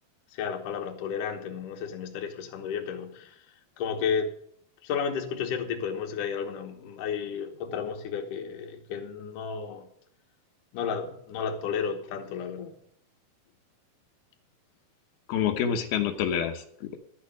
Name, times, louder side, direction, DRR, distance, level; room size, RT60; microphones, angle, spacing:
voice 1, 0.3-3.4 3.8-4.3 4.8-9.9 10.7-12.7, left 6 dB, 65° left, 3 dB, 2.6 m, -32 dB
voice 2, 15.3-17.0, left 8 dB, 85° left, 5 dB, 3.0 m, -27 dB
12.0 x 6.5 x 7.6 m, 0.67 s
omnidirectional pair, 4.4 m